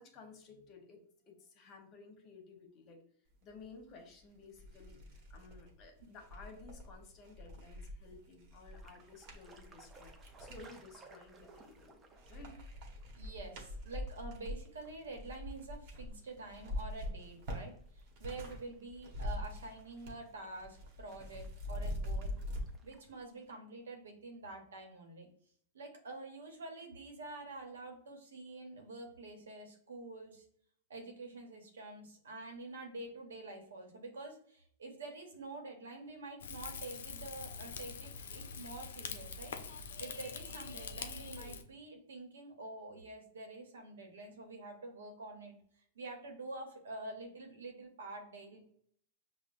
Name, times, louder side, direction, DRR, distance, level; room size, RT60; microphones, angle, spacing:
voice 1, 0.0-3.0 3.4-12.0 12.3-12.5, left 4 dB, 35° left, 2 dB, 1.0 m, -55 dB
sound 1, 4.0-4.1 4.5-10.7 11.3-11.9 12.2-18.6 18.9-20.3 20.5-22.6, left 1 dB, 50° right, 1.0 m, -43 dB
sound 2, 8.7-23.5, right 2 dB, 20° right, 0.5 m, -62 dB
voice 2, 13.1-22.4 22.8-25.3 25.7-30.5 30.9-39.5 40.0-45.5 45.9-48.6, right 2 dB, 85° right, 3 dB, 0.9 m, -47 dB
Rain / Fire, 36.4-41.6, left 5 dB, 80° left, 0.4 m, -44 dB
5.5 x 2.1 x 2.5 m, 0.62 s
hypercardioid pair, 120°, 0 cm